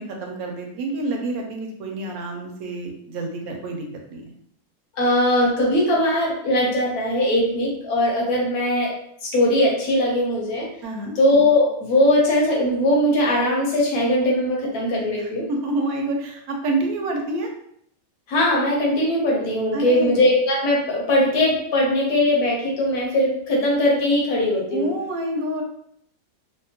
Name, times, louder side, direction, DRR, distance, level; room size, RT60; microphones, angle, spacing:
voice 1, 0.0-4.3 10.8-11.2 15.2-17.5 19.7-20.1 24.7-25.6, right 2 dB, 80° right, 2 dB, 1.1 m, -28 dB
voice 2, 5.0-8.9 9.2-10.7 11.2-15.5 18.3-24.9, left 1 dB, 90° left, -2 dB, 1.3 m, -20 dB
3.4 x 2.1 x 2.7 m, 0.70 s
omnidirectional pair, 1.5 m